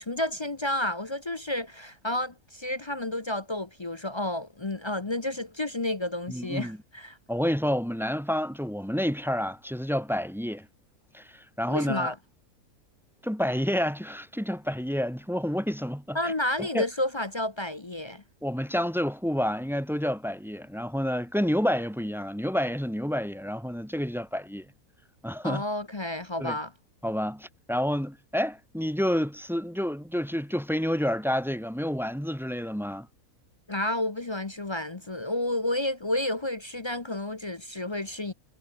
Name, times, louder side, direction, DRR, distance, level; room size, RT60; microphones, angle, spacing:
voice 1, 0.0-7.2 11.7-12.1 16.1-18.2 25.4-26.7 33.7-38.3, left 1 dB, 25° left, 0.6 m, -31 dB
voice 2, 6.3-6.8 7.3-10.7 11.1-12.1 13.2-16.3 16.6-16.8 18.4-24.7 25.2-25.6 26.4-26.6 27.0-33.1, equal, ahead, 2.3 m, -29 dB
omnidirectional pair, 1.6 m